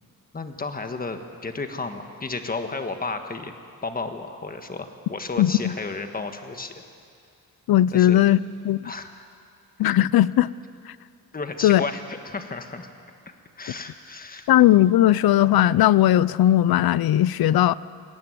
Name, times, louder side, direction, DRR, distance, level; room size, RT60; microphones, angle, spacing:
voice 1, 0.3-3.5 3.8-6.7 7.9-8.2 8.8-9.3 11.3-12.9 13.6-14.5, left 3 dB, 25° left, 6 dB, 1.5 m, -33 dB
voice 2, 5.4-5.7 7.7-8.4 8.6-8.9 9.8-10.5 11.6-11.8 14.5-17.7, left 13 dB, 80° left, 19 dB, 0.6 m, -18 dB
20.5 x 17.5 x 9.3 m, 2.3 s
wide cardioid pair, 140°, 36 cm